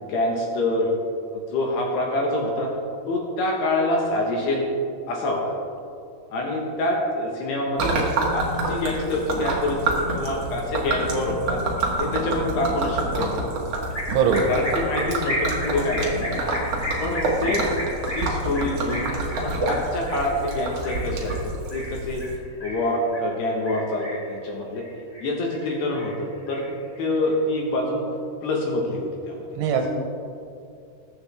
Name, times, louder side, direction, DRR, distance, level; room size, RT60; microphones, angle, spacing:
voice 1, 0.0-0.9 1.5-2.7 3.1-4.7 5.1-5.6 6.3-8.0 8.3-11.6 12.0-13.4 14.5-16.5 17.0-17.7 18.1-19.1 19.4-21.3 21.7-22.2 22.6-24.8 25.2-26.7 27.0-28.1 28.4-29.4, left 1 dB, 70° left, -1 dB, 3.1 m, -26 dB
Gurgling / Liquid, 7.8-22.4, right 2 dB, 55° right, 1.8 m, -27 dB
sound 1, 13.9-23.3 23.7-24.4 24.7-25.7 25.9-27.3, equal, 40° left, 1.0 m, -33 dB
voice 2, 14.1-14.5 29.5-29.9, right 6 dB, 85° right, 4 dB, 3.3 m, -21 dB
21.0 x 8.3 x 3.5 m, 2.5 s
omnidirectional pair, 5.5 m